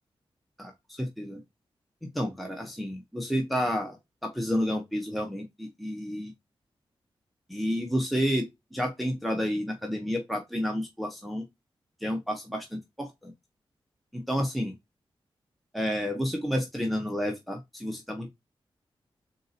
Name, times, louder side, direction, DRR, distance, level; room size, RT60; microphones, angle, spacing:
voice 1, 0.6-1.4 2.1-4.0 4.2-6.3 7.5-11.4 12.0-13.3 14.1-14.7 15.7-18.3, equal, ahead, 0.8 m, -30 dB
3.9 x 2.8 x 3.9 m
wide cardioid pair, 125°, 9 cm